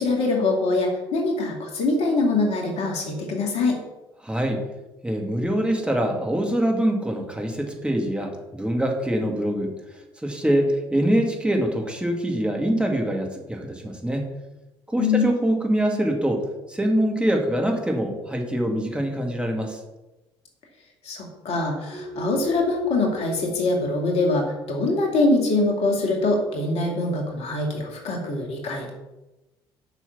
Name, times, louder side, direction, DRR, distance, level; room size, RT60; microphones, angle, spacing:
voice 1, 0.0-3.8 15.0-15.3 21.0-28.9, left 2 dB, 55° left, 1 dB, 2.4 m, -23 dB
voice 2, 4.2-4.6 5.0-9.7 10.2-14.3 14.9-19.8, right 1 dB, 10° right, 2 dB, 2.1 m, -24 dB
sound 1, 21.9-28.1, equal, 70° right, 2.1 m, -38 dB
7.2 x 6.1 x 7.1 m, 1.0 s
figure-of-eight pair, 55°, 13 cm